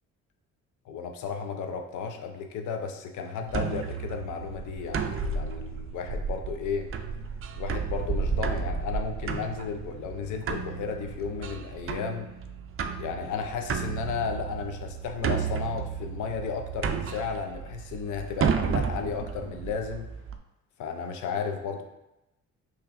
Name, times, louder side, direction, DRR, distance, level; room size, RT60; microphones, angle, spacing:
voice 1, 0.9-6.9 7.5-12.3 13.0-20.1 20.8-21.8, left 6 dB, 80° left, 5 dB, 0.7 m, -34 dB
sound 1, 3.5-20.4, right 6 dB, 45° right, 0.5 m, -32 dB
5.8 x 3.1 x 2.6 m, 0.91 s
cardioid pair, 80°, 30 cm